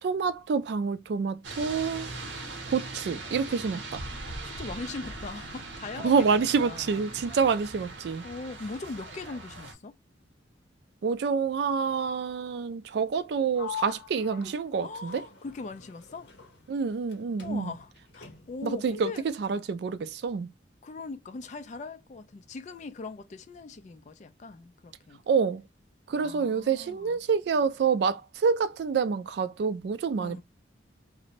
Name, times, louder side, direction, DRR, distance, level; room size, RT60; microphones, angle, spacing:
voice 1, 0.0-2.1 2.7-4.0 6.0-8.2 11.0-15.2 16.7-17.7 18.6-19.1 19.4-20.5 25.3-25.6 26.1-30.4, right 5 dB, 65° right, 0.3 m, -27 dB
sound 1, 1.4-9.7, right 2 dB, 90° right, 0.7 m, -40 dB
voice 2, 2.2-2.6 4.4-7.1 8.2-10.0 14.8-16.3 17.4-19.3 20.8-25.2 26.1-27.2 30.2-30.4, left 3 dB, 40° left, 0.3 m, -40 dB
Sliding door, 13.5-17.1 17.4-18.7, left 9 dB, 65° left, 0.8 m, -43 dB
2.5 x 2.0 x 2.8 m
head